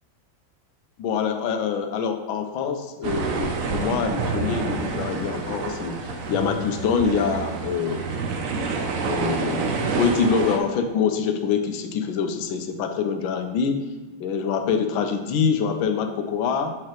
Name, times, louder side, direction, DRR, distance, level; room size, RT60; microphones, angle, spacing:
voice 1, 1.0-8.2 9.0-9.7 10.0-13.8 14.2-16.8, left 6 dB, 85° left, 7 dB, 1.4 m, -25 dB
sound 1, 3.0-10.6, right 4 dB, 90° right, 0.7 m, -28 dB
7.0 x 4.8 x 3.0 m, 1.2 s
omnidirectional pair, 2.2 m